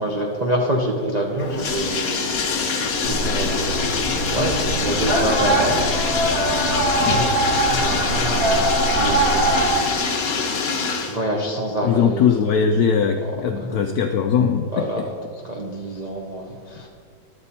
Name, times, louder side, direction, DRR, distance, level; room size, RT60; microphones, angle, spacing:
voice 1, 0.0-2.2 2.8-5.8 6.3-6.8 7.0-10.1 11.1-12.3 13.6-13.9 14.7-15.0 15.5-16.9, right 1 dB, 70° right, -1 dB, 0.4 m, -27 dB
Bathtub (filling or washing), 1.4-11.2, left 5 dB, 55° left, 1.3 m, -24 dB
sound 1, 3.0-9.7, right 1 dB, 45° right, 2.0 m, -22 dB
voice 2, 11.8-15.1, left 7 dB, 80° left, 5 dB, 0.8 m, -20 dB
12.0 x 7.9 x 4.2 m, 2.1 s
omnidirectional pair, 2.1 m